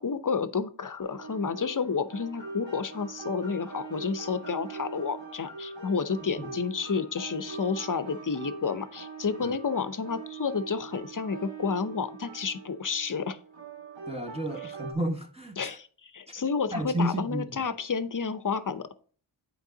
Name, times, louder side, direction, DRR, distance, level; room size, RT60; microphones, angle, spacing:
voice 1, 0.0-13.4 15.6-18.9, left 5 dB, 40° left, 13 dB, 0.7 m, -30 dB
sound 1, 1.0-14.9, right 3 dB, 60° right, 1.8 m, -42 dB
voice 2, 14.1-15.8 16.7-17.7, right 1 dB, 10° right, 2 dB, 1.2 m, -32 dB
8.2 x 4.7 x 3.8 m, 0.43 s
cardioid pair, 55°, 48 cm